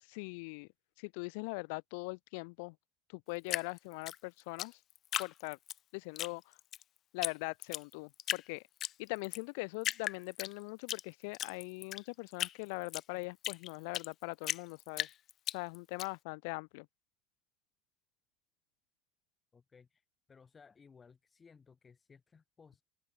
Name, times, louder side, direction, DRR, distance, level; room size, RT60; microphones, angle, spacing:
voice 1, 0.1-0.7 1.0-2.8 3.1-4.8 5.2-5.6 5.9-6.6 7.1-8.6 9.0-15.1 15.5-16.9, left 32 dB, 75° left, 2.7 m, -41 dB
Drip, 3.5-5.8 6.2-6.8 7.2-7.3 7.6-8.4 8.8-9.4 9.8-11.0 11.3-14.1 14.4-16.1, left 12 dB, 45° left, 1.6 m, -37 dB
voice 2, 19.5-20.0 20.3-22.8, left 5 dB, 20° left, 7.1 m, -60 dB
supercardioid pair, 125°, 0 cm